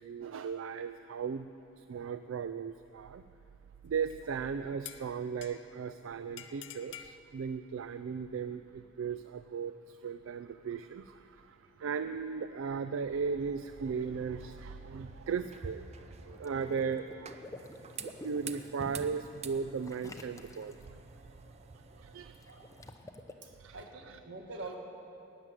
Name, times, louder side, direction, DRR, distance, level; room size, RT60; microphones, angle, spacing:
voice 1, 0.0-3.2 3.8-17.4 18.0-21.0 21.7-22.7 23.4-24.2, right 6 dB, 80° right, 11 dB, 0.4 m, -37 dB
sound 1, 4.1-4.4 4.8-5.8 6.4-7.2, left 10 dB, 65° left, 0.6 m, -48 dB
sound 2, 13.6-22.9, right 5 dB, 35° right, 0.6 m, -49 dB
Water / Liquid, 16.3-18.8 19.8-20.9 22.3-23.3, left 2 dB, 15° left, 0.7 m, -49 dB
voice 2, 23.4-24.7, right 2 dB, 65° right, 1 dB, 1.8 m, -45 dB
12.0 x 7.9 x 9.3 m, 2.9 s
head